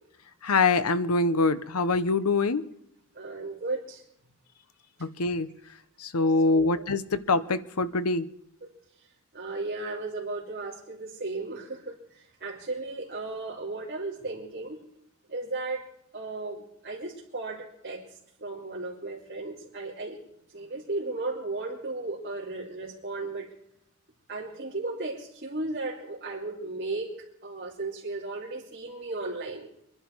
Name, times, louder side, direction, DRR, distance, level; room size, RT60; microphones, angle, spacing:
voice 1, 0.4-2.6 5.0-5.5 6.0-8.3, left 3 dB, 90° left, 14 dB, 0.9 m, -24 dB
voice 2, 3.1-4.0 6.5-6.7 8.6-8.7 9.3-14.8 15.3-15.8 16.1-18.0 18.4-20.2 20.5-23.5 24.3-27.1 27.4-29.7, right 3 dB, 45° right, -5 dB, 2.9 m, -35 dB
25.0 x 11.0 x 4.7 m, 0.76 s
head